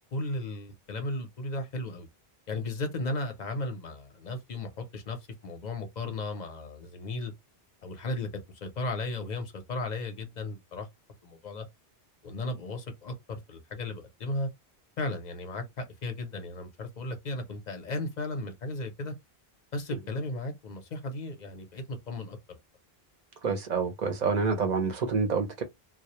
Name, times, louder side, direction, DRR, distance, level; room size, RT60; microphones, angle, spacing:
voice 1, 0.1-2.1 2.5-5.2 5.4-7.3 7.8-8.3 8.6-10.9 11.2-11.7 12.2-14.5 15.0-19.1 19.7-22.6, left 2 dB, 50° left, 0.6 m, -35 dB
voice 2, 23.4-25.6, right 5 dB, 50° right, 0.7 m, -27 dB
2.2 x 2.0 x 2.8 m
omnidirectional pair, 1.1 m